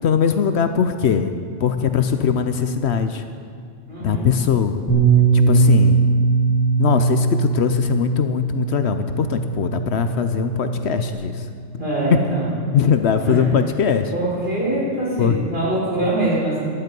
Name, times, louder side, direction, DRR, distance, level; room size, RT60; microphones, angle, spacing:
voice 1, 0.0-1.3 1.6-3.2 4.0-4.8 5.3-6.0 6.8-11.5 12.7-14.1 15.2-15.4, left 7 dB, 65° left, 9 dB, 0.9 m, -20 dB
voice 2, 3.9-4.2 11.8-12.5 13.3-13.4 14.1-16.6, right 2 dB, 50° right, -7 dB, 5.1 m, -23 dB
Bass guitar, 4.9-11.1, right 4 dB, 15° left, 2.5 m, -19 dB
16.0 x 12.0 x 5.3 m, 2.3 s
omnidirectional pair, 1.3 m